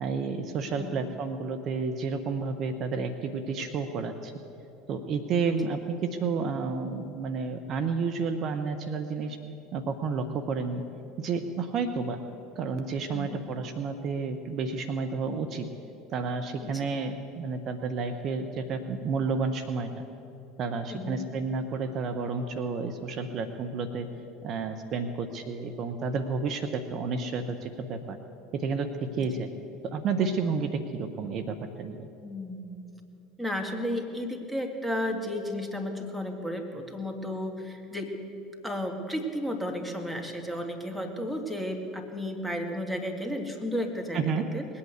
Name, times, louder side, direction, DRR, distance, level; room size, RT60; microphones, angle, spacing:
voice 1, 0.0-4.3 4.9-9.4 9.7-10.8 11.2-12.2 12.6-15.7 16.1-19.9 20.6-24.1 24.4-28.2 28.5-29.5 29.8-32.1 44.1-44.5, right 4 dB, 45° right, 8 dB, 0.9 m, -31 dB
voice 2, 20.9-21.2 29.2-29.4 32.2-32.8 33.4-38.1 38.6-44.2 44.5-44.7, left 1 dB, ahead, 2 dB, 2.2 m, -33 dB
20.5 x 8.6 x 8.1 m, 2.9 s
figure-of-eight pair, 70°, 0 cm